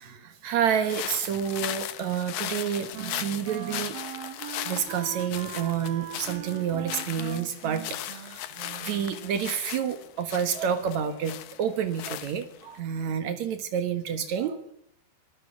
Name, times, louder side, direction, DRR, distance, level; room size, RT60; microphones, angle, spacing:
voice 1, 0.0-4.0 4.6-14.7, right 8 dB, 80° right, 8 dB, 1.6 m, -29 dB
sound 1, 0.8-12.8, left 12 dB, 75° left, 2.1 m, -38 dB
Wind instrument woodwind instrument, 2.0-9.4, right 11 dB, 65° right, 2.6 m, -41 dB
25.5 x 19.5 x 7.3 m, 0.70 s
omnidirectional pair, 5.6 m